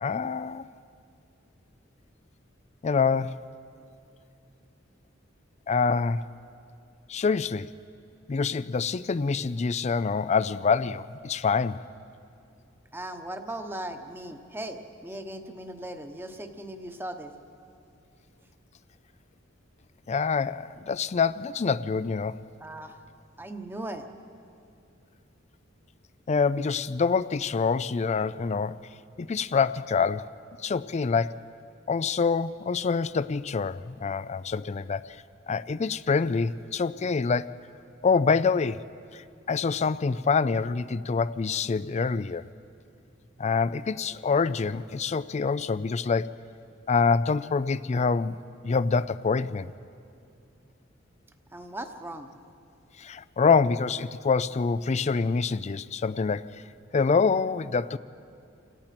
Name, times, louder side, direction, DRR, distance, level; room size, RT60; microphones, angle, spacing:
voice 1, 0.0-0.7 2.8-3.4 5.7-6.2 7.1-7.7 8.3-11.8 20.1-22.4 26.3-28.8 29.2-30.3 30.6-31.4 31.9-35.2 35.5-37.5 38.0-38.8 39.1-42.4 43.4-46.3 46.9-48.4 48.6-49.7 53.0-56.6 56.9-58.0, left 5 dB, 35° left, 16 dB, 0.4 m, -26 dB
voice 2, 12.9-17.3 22.6-23.0 23.4-24.1 51.5-52.3, right 1 dB, 10° right, 7 dB, 1.1 m, -38 dB
29.0 x 17.5 x 6.0 m, 2.6 s
head